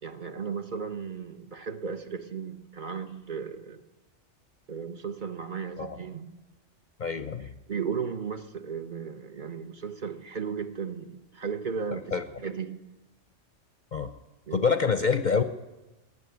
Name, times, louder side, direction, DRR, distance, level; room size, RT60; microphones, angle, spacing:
voice 1, 0.0-3.8 4.7-6.3 7.7-12.8 14.5-14.7, right 6 dB, 45° right, 0.9 m, -35 dB
voice 2, 7.0-7.5 11.9-12.2 13.9-14.1 14.5-15.4, left 5 dB, 50° left, 0.6 m, -26 dB
15.5 x 9.9 x 9.3 m
omnidirectional pair, 1.2 m